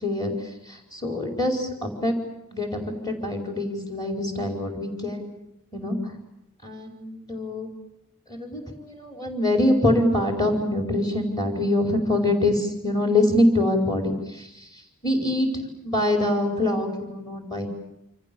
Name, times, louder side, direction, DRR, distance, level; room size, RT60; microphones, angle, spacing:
voice 1, 0.0-0.3 0.9-2.1 2.5-5.3 5.7-6.0 6.6-7.7 8.3-14.5 15.0-17.7, left 1 dB, 20° left, 4 dB, 5.0 m, -24 dB
28.5 x 26.0 x 7.2 m, 0.85 s
head